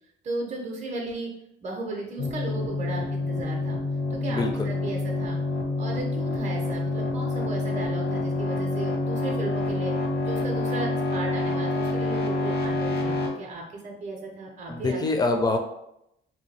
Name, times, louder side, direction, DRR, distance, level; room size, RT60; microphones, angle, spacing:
voice 1, 0.2-1.3 1.6-3.8 4.1-5.4 5.8-9.9 10.2-15.0, right 2 dB, 35° right, 0 dB, 0.6 m, -35 dB
sound 1, 2.2-13.3, left 2 dB, 55° left, 0.7 m, -27 dB
voice 2, 4.3-4.7 14.7-15.6, left 3 dB, 20° left, 4 dB, 0.5 m, -25 dB
2.7 x 2.2 x 3.2 m, 0.81 s
cardioid pair, 90°, 20 cm